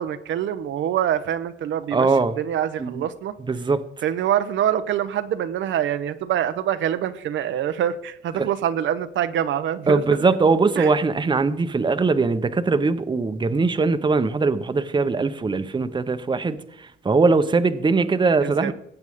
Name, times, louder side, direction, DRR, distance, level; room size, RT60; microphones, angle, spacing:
voice 1, 0.0-3.4 4.0-10.2 10.8-10.9 18.4-18.7, right 10 dB, 75° right, 0.7 m, -25 dB
voice 2, 1.9-2.3 2.8-3.0 3.5-3.8 9.9-18.7, right 4 dB, 25° right, 0.8 m, -21 dB
18.5 x 8.1 x 3.6 m
cardioid pair, 90°, 20 cm